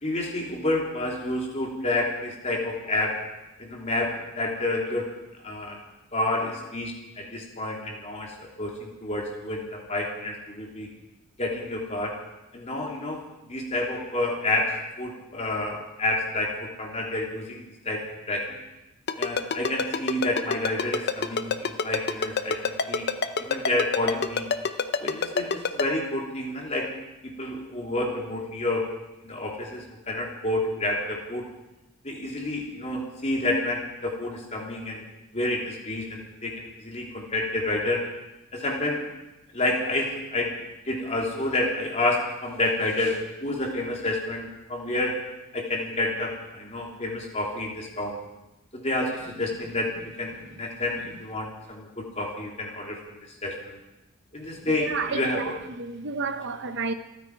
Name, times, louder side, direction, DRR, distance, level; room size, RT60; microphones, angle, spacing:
voice 1, 0.0-3.2 3.6-5.1 5.4-5.8 6.1-10.9 11.4-12.1 12.5-13.2 13.4-18.6 19.2-23.1 23.4-24.5 25.0-26.9 27.2-28.9 29.2-31.4 32.0-35.0 35.3-38.0 38.5-39.0 39.5-40.5 40.9-45.2 45.5-48.2 48.7-49.9 50.2-53.8 54.3-55.5, left 2 dB, 30° left, 3.1 m, -29 dB
Ringtone, 19.1-25.8, left 5 dB, 45° left, 0.8 m, -25 dB
voice 2, 54.5-56.9, right 4 dB, 50° right, 1.0 m, -31 dB
28.5 x 9.6 x 4.8 m
head